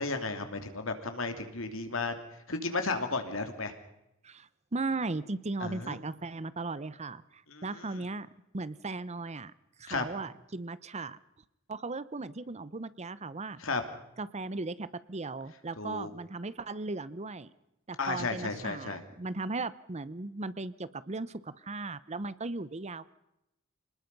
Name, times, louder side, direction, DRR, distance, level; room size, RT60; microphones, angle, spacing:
voice 1, 0.0-2.1 2.5-3.7 5.6-6.0 7.5-7.6 9.9-10.0 13.6-13.8 15.8-16.1 18.0-19.0, left 3 dB, 70° left, 7 dB, 2.9 m, -33 dB
voice 2, 4.2-8.3 8.5-9.5 9.8-11.2 11.7-13.6 14.2-17.5 17.9-23.1, right 3 dB, 35° right, 17 dB, 0.8 m, -37 dB
27.0 x 20.0 x 5.5 m, 0.87 s
head